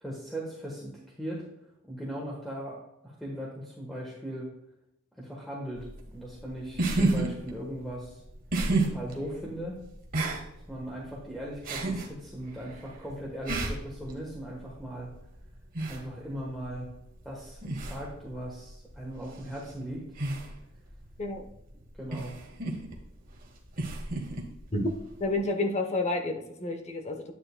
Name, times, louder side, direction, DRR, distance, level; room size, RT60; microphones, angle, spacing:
voice 1, 0.0-1.4 1.8-4.5 5.2-5.9 6.1-8.2 8.7-9.8 10.7-15.1 15.8-16.9 17.2-20.0 21.9-22.4, right 1 dB, ahead, -4 dB, 1.2 m, -38 dB
sound 1, 5.8-25.4, right 2 dB, 45° right, 1.3 m, -34 dB
voice 2, 25.2-27.2, left 2 dB, 35° left, 5 dB, 0.9 m, -29 dB
9.4 x 8.9 x 2.2 m, 0.82 s
head